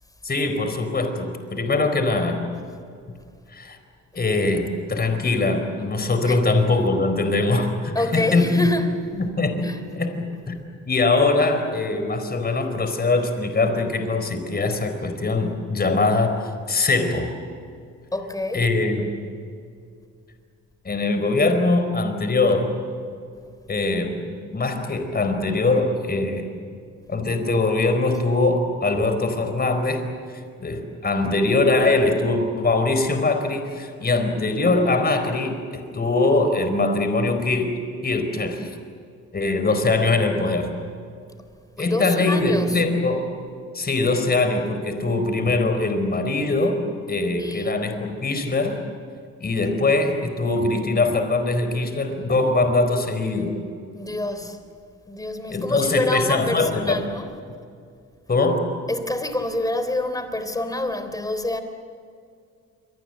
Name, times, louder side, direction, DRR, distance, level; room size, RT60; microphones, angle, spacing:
voice 1, 0.2-2.5 3.5-3.8 4.1-8.8 9.2-9.7 9.9-10.6 10.9-17.3 18.5-19.1 20.8-22.7 23.7-26.5 27.1-30.1 30.6-38.7 39.3-40.7 41.8-43.3 43.7-46.8 47.1-48.8 49.4-53.6 55.5-57.0 58.3-58.6, left 3 dB, 30° left, 4.5 m, -22 dB
voice 2, 7.9-9.2 9.6-9.9 18.1-18.7 41.8-42.9 47.4-47.7 53.9-54.6 55.1-57.4 58.9-61.6, left 1 dB, 10° left, 3.5 m, -27 dB
28.0 x 23.5 x 7.9 m
cardioid pair, 90°, 30 cm